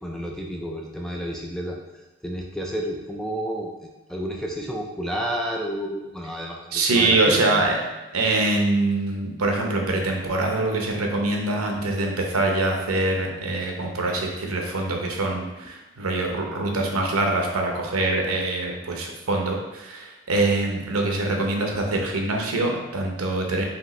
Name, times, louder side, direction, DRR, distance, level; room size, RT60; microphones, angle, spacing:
voice 1, 0.0-1.8 2.2-7.9, equal, ahead, -1 dB, 0.3 m, -31 dB
voice 2, 6.7-7.8 8.1-23.6, right 2 dB, 80° right, 1 dB, 0.8 m, -24 dB
5.0 x 2.9 x 3.1 m, 1.1 s
head